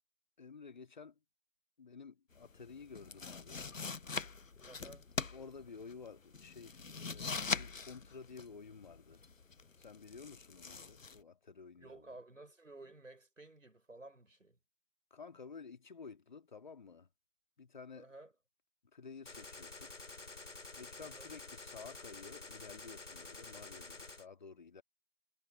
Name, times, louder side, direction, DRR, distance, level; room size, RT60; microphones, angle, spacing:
voice 1, 0.4-1.2 1.8-3.6 5.3-9.2 9.8-12.0 15.1-17.1 17.6-18.1 18.9-19.9 20.8-24.8, left 5 dB, 35° left, 1.9 m, -52 dB
sound 1, 2.3-11.2, left 4 dB, 90° left, 0.9 m, -43 dB
voice 2, 4.7-5.1 11.8-14.6 17.9-18.3 21.0-21.3, right 2 dB, 80° right, 5.8 m, -54 dB
Gunshot gunfire, 19.3-24.3, left 3 dB, 65° left, 3.3 m, -50 dB
figure-of-eight pair, 155°, 38 cm